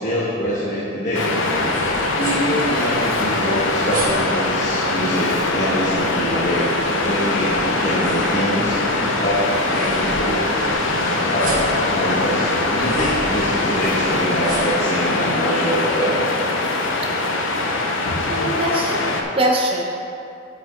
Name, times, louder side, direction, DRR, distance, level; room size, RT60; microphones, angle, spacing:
voice 1, 0.0-1.4 2.2-6.7 7.0-8.8 9.2-10.4 11.3-16.2, equal, 40° left, -9 dB, 1.2 m, -24 dB
Waves surf, 1.1-19.2, left 2 dB, 80° left, 0.8 m, -22 dB
sound 1, 1.5-14.9, right 2 dB, 45° right, 1.2 m, -36 dB
sound 2, 6.2-15.4, right 2 dB, 80° right, 1.0 m, -38 dB
voice 2, 18.3-19.8, right 1 dB, 25° right, -1 dB, 0.9 m, -22 dB
8.7 x 6.7 x 3.9 m, 2.6 s
head